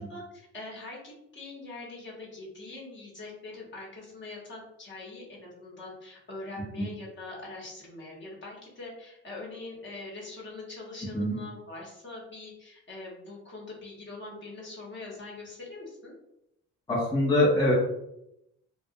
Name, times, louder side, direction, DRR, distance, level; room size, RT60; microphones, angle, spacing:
voice 1, 0.0-16.1, left 2 dB, 40° left, -4 dB, 1.0 m, -43 dB
voice 2, 16.9-17.7, left 1 dB, 15° left, -5 dB, 0.7 m, -23 dB
2.3 x 2.1 x 2.6 m, 0.81 s
cardioid pair, 90°, 30 cm